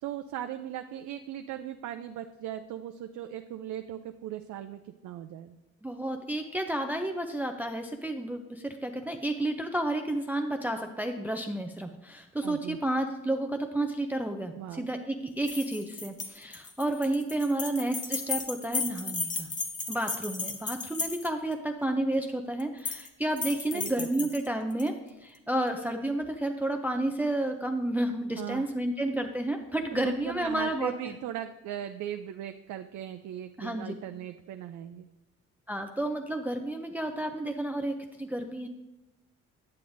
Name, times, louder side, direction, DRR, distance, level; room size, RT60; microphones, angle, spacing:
voice 1, 0.0-5.6 12.4-12.8 14.5-14.9 23.7-24.3 28.4-28.7 29.9-35.1, right 11 dB, 75° right, 7 dB, 0.5 m, -38 dB
voice 2, 5.8-19.5 19.9-24.9 25.2-30.9 33.6-33.9 35.7-38.7, right 1 dB, 5° right, 5 dB, 0.4 m, -31 dB
sound 1, 15.4-21.5 22.6-23.1 23.4-24.9, left 4 dB, 25° left, 0.8 m, -35 dB
8.5 x 7.6 x 2.6 m, 1.0 s
cardioid pair, 90°, 30 cm